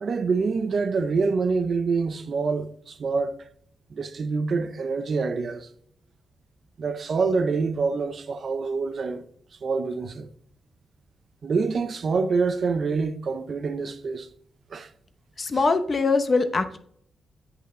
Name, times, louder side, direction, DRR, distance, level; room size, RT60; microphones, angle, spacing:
voice 1, 0.0-3.4 3.9-5.7 6.8-9.2 9.6-10.3 11.4-14.3 14.7-14.9, right 4 dB, 40° right, 0.5 m, -26 dB
voice 2, 15.4-16.8, left 3 dB, 30° left, 0.7 m, -22 dB
8.5 x 5.3 x 3.7 m
wide cardioid pair, 165°, 0 cm